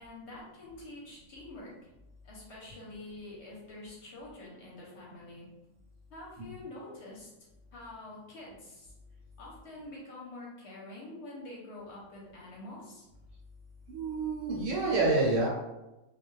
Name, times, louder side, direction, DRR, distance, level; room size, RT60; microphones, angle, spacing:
voice 1, 0.0-1.7 2.2-5.5 6.1-7.3 7.7-8.9 9.4-13.1, left 2 dB, 60° left, -4 dB, 0.9 m, -46 dB
voice 2, 13.9-15.5, right 3 dB, 65° right, -2 dB, 1.0 m, -28 dB
2.4 x 2.1 x 3.0 m, 0.99 s
omnidirectional pair, 1.5 m